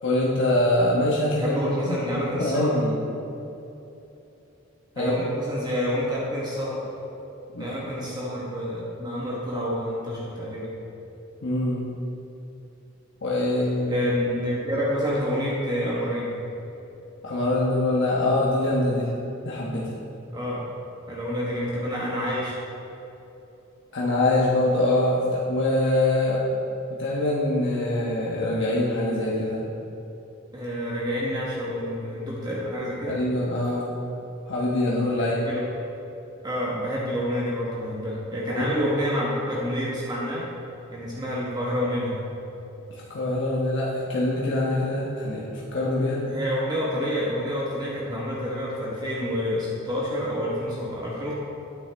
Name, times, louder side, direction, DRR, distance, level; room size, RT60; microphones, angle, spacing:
voice 1, 0.0-1.5 1.9-2.0 2.4-3.0 5.0-5.1 7.5-7.7 11.4-11.9 13.2-14.0 17.2-19.1 19.4-19.9 23.9-26.4 27.0-29.6 33.0-33.9 34.5-35.3 38.5-38.7 42.9-46.3, left 1 dB, 60° left, -5 dB, 1.2 m, -24 dB
voice 2, 1.4-2.7 4.9-6.8 7.6-10.7 13.9-16.4 20.3-20.7 21.1-22.6 30.5-33.2 35.2-35.7 36.4-40.5 40.9-42.2 46.2-51.3, equal, 20° right, -6 dB, 1.3 m, -28 dB
9.4 x 9.0 x 3.5 m, 2.9 s
head